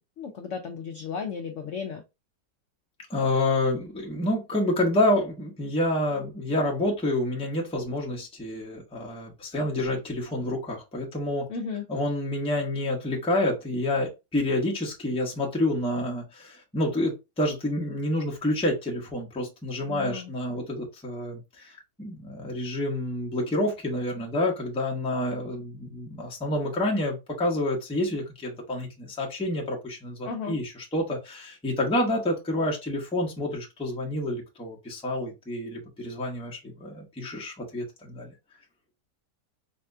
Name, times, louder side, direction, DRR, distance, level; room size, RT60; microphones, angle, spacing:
voice 1, 0.2-2.0 11.5-11.8 19.9-20.3 30.2-30.6, left 6 dB, 80° left, 0.6 m, -34 dB
voice 2, 3.1-11.5 11.9-38.3, left 1 dB, 5° left, 0.5 m, -28 dB
4.1 x 2.3 x 2.6 m
omnidirectional pair, 1.8 m